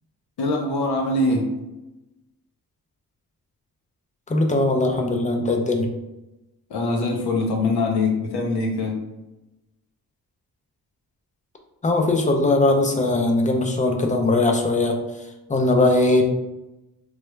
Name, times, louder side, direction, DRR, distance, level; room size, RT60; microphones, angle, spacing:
voice 1, 0.4-1.5 6.7-9.0, left 2 dB, 85° left, 0 dB, 0.6 m, -23 dB
voice 2, 4.3-5.9 11.8-15.0 15.5-16.2, left 2 dB, 20° left, 3 dB, 0.4 m, -20 dB
3.2 x 2.2 x 3.0 m, 0.98 s
wide cardioid pair, 120°, 38 cm